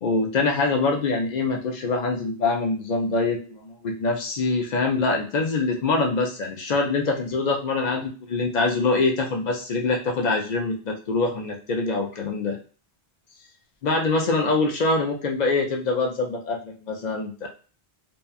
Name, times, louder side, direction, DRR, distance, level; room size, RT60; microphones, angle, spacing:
voice 1, 0.0-12.6 13.8-17.5, left 3 dB, 55° left, 2 dB, 0.5 m, -24 dB
2.7 x 2.3 x 2.3 m, 0.37 s
omnidirectional pair, 1.0 m